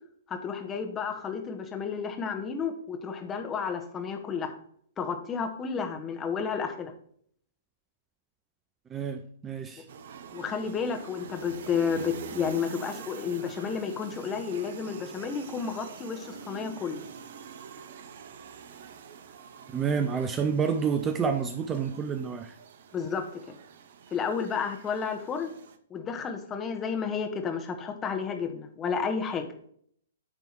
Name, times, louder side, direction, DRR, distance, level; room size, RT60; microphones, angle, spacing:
voice 1, 0.3-4.5 5.0-6.9 10.3-17.0 22.9-23.2 24.1-25.5 25.9-29.5, left 6 dB, 20° left, 5 dB, 1.2 m, -31 dB
voice 2, 8.9-9.9 19.7-22.6, right 6 dB, 20° right, 7 dB, 0.6 m, -29 dB
sound 1, 9.9-25.8, right 7 dB, 55° right, 0.7 m, -46 dB
9.7 x 3.5 x 4.6 m, 0.64 s
figure-of-eight pair, 120°, 0 cm